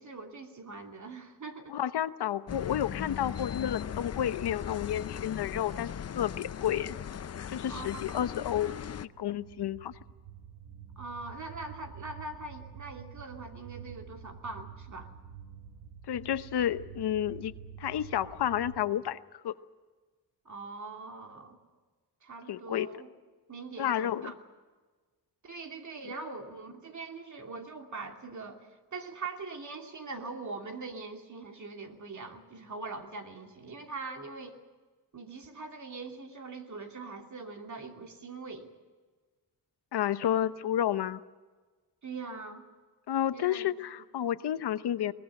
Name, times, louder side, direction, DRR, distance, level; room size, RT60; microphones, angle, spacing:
voice 1, 0.0-1.8 7.7-8.3 11.0-15.1 20.4-21.6 22.2-23.1 23.5-24.4 25.4-34.6 35.1-38.7 42.0-42.7 43.3-43.7, right 3 dB, 45° right, 4 dB, 2.8 m, -42 dB
voice 2, 1.7-6.9 7.5-8.7 9.2-9.9 16.1-17.5 17.8-19.2 19.4-19.5 22.5-22.9 23.8-24.3 39.9-41.2 43.1-45.1, left 10 dB, 85° left, 13 dB, 0.9 m, -31 dB
sound 1, 2.5-9.1, left 8 dB, 40° left, 0.6 m, -38 dB
sound 2, 8.8-18.8, right 8 dB, 70° right, 1.3 m, -48 dB
22.0 x 19.5 x 7.7 m, 1.4 s
wide cardioid pair, 110°, 39 cm